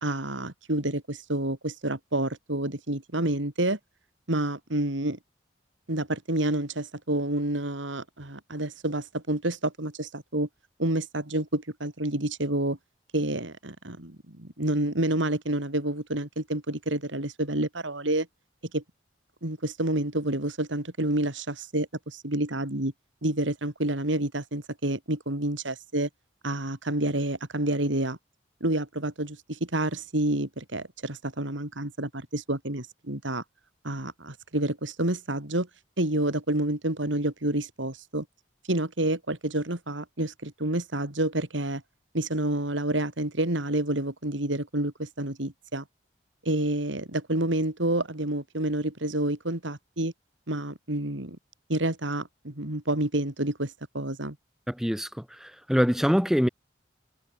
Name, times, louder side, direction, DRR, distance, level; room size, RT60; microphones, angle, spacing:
voice 1, 0.0-3.8 4.3-5.2 5.9-10.5 10.8-12.8 13.1-18.3 18.7-18.8 19.4-22.9 23.2-26.1 26.4-28.2 28.6-33.4 33.8-35.7 36.0-38.3 38.7-41.8 42.1-45.8 46.5-50.1 50.5-51.4 51.7-54.4, right 1 dB, 85° right, 3.6 m, -29 dB
voice 2, 54.7-55.1 55.4-56.5, equal, ahead, 1.5 m, -24 dB
head